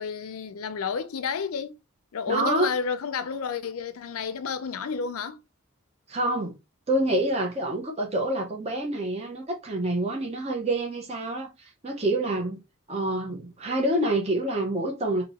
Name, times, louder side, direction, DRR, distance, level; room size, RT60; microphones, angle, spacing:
voice 1, 0.0-1.7 2.1-5.4, left 6 dB, 85° left, 0.5 m, -31 dB
voice 2, 2.3-2.7 6.1-6.5 6.9-12.6 12.9-15.2, right 1 dB, 30° right, 0.8 m, -27 dB
2.8 x 2.7 x 4.0 m
head